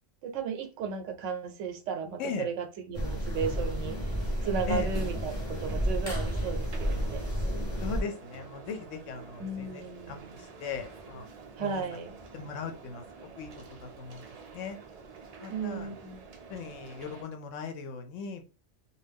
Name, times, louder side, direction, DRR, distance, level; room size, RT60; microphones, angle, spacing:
voice 1, 0.2-4.0 4.4-7.2 9.4-10.4 11.6-12.1 15.5-16.2, right 6 dB, 80° right, 0.9 m, -35 dB
sound 1, 2.9-8.0, equal, 40° left, 1.0 m, -31 dB
sound 2, 3.3-17.2, right 5 dB, 65° right, 0.4 m, -49 dB
voice 2, 7.8-11.2 11.6-11.8 12.3-14.3 14.5-14.8 15.4-15.9 16.5-18.4, left 5 dB, 80° left, 1.0 m, -39 dB
2.5 x 2.2 x 3.4 m
omnidirectional pair, 1.3 m